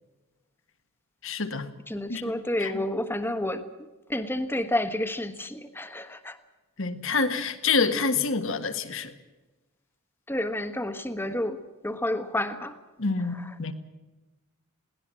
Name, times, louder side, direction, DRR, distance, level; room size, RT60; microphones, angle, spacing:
voice 1, 1.2-1.7 2.1-2.2 2.6-2.7 6.8-9.1 13.0-13.7, left 4 dB, 60° left, 1.6 m, -27 dB
voice 2, 1.9-3.6 4.1-6.4 10.3-12.8 13.2-13.6, left 1 dB, 10° left, 1.3 m, -30 dB
21.5 x 18.5 x 7.6 m
head